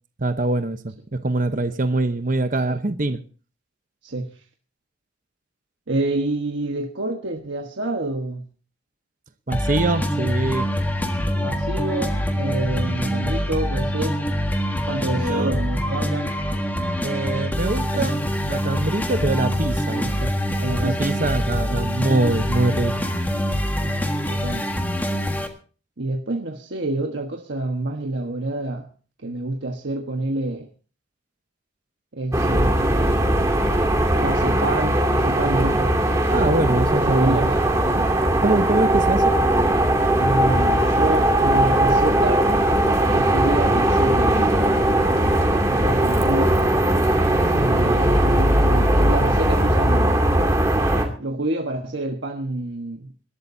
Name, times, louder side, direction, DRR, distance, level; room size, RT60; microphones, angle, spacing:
voice 1, 0.2-3.2 9.5-10.7 15.2-15.5 17.0-20.3 20.7-22.9 36.3-37.4 38.4-39.4, right 2 dB, 45° right, 0.9 m, -23 dB
voice 2, 4.0-4.4 5.9-8.4 11.4-14.2 14.9-16.3 17.9-18.3 20.6-21.0 21.7-21.9 23.8-24.0 24.3-24.7 26.0-28.9 29.2-30.7 32.1-32.9 34.1-36.0 37.0-37.6 37.9-38.1 40.2-42.5 43.1-44.6 45.7-46.6 47.4-50.2 51.2-53.2, right 2 dB, 70° right, 1.3 m, -27 dB
sound 1, 9.5-25.5, equal, 10° left, 1.6 m, -24 dB
sound 2, 32.3-51.0, right 1 dB, 15° right, 2.5 m, -19 dB
27.0 x 12.5 x 2.7 m
head